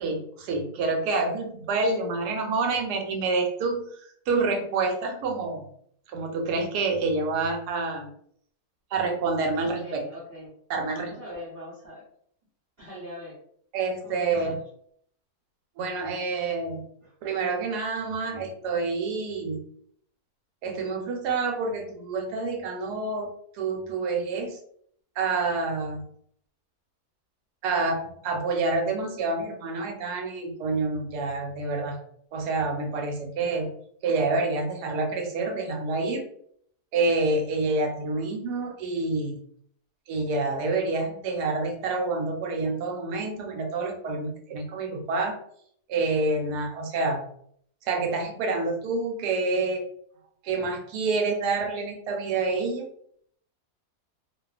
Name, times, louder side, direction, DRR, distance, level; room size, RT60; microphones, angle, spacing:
voice 1, 0.0-5.7 6.1-8.1 8.9-10.0 10.7-11.1 13.7-14.6 15.8-16.8 17.2-19.6 20.6-23.3 23.5-24.6 25.2-26.1 27.6-32.0 32.3-33.7 34.0-36.3 36.9-39.4 40.1-45.3 45.9-47.2 47.8-49.8 50.4-52.8, right 3 dB, 85° right, 4 dB, 1.1 m, -28 dB
voice 2, 9.6-10.5 10.9-12.1 12.8-13.4 14.0-14.5 17.0-17.2, left 1 dB, 45° right, -8 dB, 0.8 m, -42 dB
2.6 x 2.3 x 2.3 m, 0.65 s
omnidirectional pair, 1.7 m